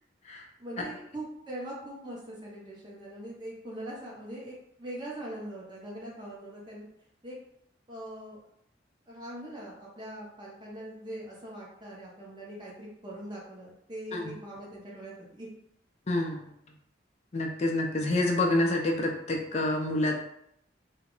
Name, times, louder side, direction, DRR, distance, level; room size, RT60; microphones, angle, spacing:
voice 1, 0.6-6.8 7.2-7.4 7.9-8.4 9.1-15.5, right 1 dB, 25° right, -4 dB, 0.7 m, -42 dB
voice 2, 16.1-16.4 17.3-20.2, left 1 dB, 35° left, 2 dB, 0.4 m, -27 dB
2.3 x 2.0 x 3.6 m, 0.76 s
head